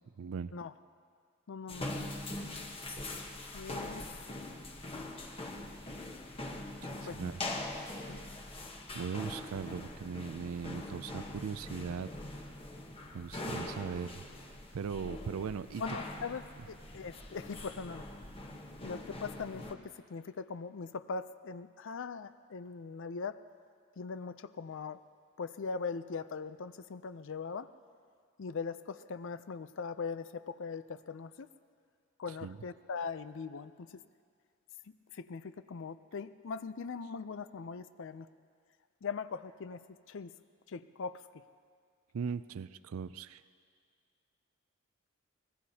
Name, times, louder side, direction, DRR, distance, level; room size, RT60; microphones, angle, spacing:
voice 1, 0.2-0.5 2.3-2.4 6.8-7.5 8.9-12.1 13.1-14.2 14.7-15.8 32.4-32.6 42.1-43.4, right 6 dB, 80° right, 14 dB, 0.4 m, -39 dB
voice 2, 1.5-2.1 3.5-4.1 7.1-7.6 8.1-8.2 15.8-18.1 18.8-19.8 20.1-23.4 24.0-25.0 25.4-27.7 28.4-31.5 32.2-34.0 35.1-38.3 39.0-39.8 40.1-40.3 40.7-41.2, left 5 dB, 65° left, 13 dB, 0.5 m, -40 dB
sound 1, 1.7-19.7, left 1 dB, 25° left, 1.1 m, -43 dB
24.5 x 19.5 x 2.8 m, 2.1 s
head